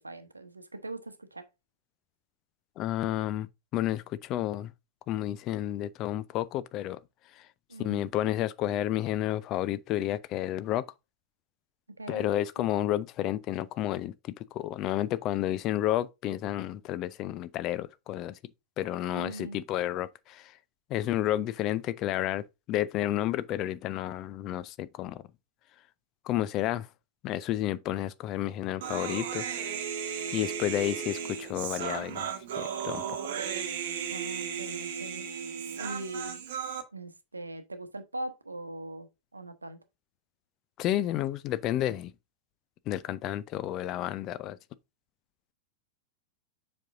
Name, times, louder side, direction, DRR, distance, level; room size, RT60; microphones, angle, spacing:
voice 1, 0.0-1.5 7.7-8.1 12.0-12.3 19.1-19.6 34.1-35.3 35.8-36.4 36.9-39.8, right 2 dB, 80° right, 0.9 m, -41 dB
voice 2, 2.8-3.5 3.7-4.7 5.1-7.0 7.3-7.5 7.8-10.9 12.1-18.4 18.8-20.6 20.9-25.2 26.2-26.9 27.2-29.8 30.3-32.3 32.5-33.2 40.8-42.1 42.9-44.6, left 13 dB, 35° left, 0.4 m, -31 dB
Human voice, 28.8-36.8, right 8 dB, 55° right, 1.1 m, -35 dB
7.4 x 5.3 x 2.5 m
figure-of-eight pair, 90°, 0 cm